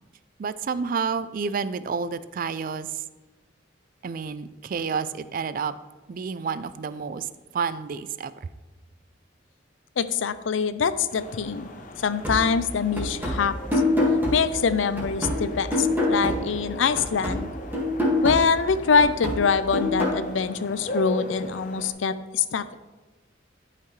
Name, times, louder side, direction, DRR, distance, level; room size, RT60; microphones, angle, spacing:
voice 1, 0.4-3.0 4.0-5.7 6.1-8.5, right 5 dB, 50° right, 15 dB, 0.3 m, -30 dB
voice 2, 10.0-11.7 12.0-13.8 14.3-17.5 18.2-22.7, left 5 dB, 85° left, 13 dB, 0.5 m, -24 dB
sound 1, 11.1-21.9, left 1 dB, 45° left, 0.7 m, -39 dB
sound 2, 12.2-16.7 17.0-20.2, left 1 dB, 10° right, 1.8 m, -26 dB
11.5 x 5.8 x 3.2 m, 1.2 s
head